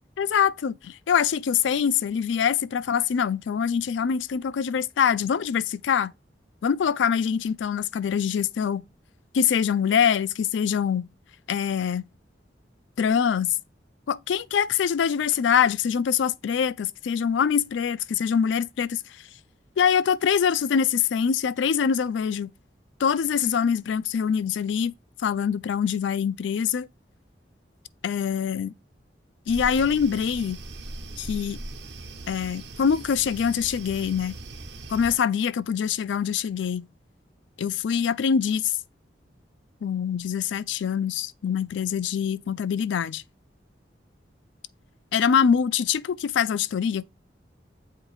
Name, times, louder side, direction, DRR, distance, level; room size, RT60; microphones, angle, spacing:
voice 1, 0.2-6.1 6.6-8.8 9.3-11.1 11.5-12.0 13.0-13.5 14.1-19.0 19.8-22.5 23.0-24.9 25.2-26.9 28.0-28.7 29.5-30.6 31.2-31.6 32.3-34.4 34.9-36.9 37.6-38.8 39.8-43.2 45.1-47.1, left 7 dB, 85° left, 0.4 m, -24 dB
sound 1, 29.5-35.1, right 2 dB, 70° right, 0.9 m, -39 dB
7.5 x 2.6 x 4.8 m
head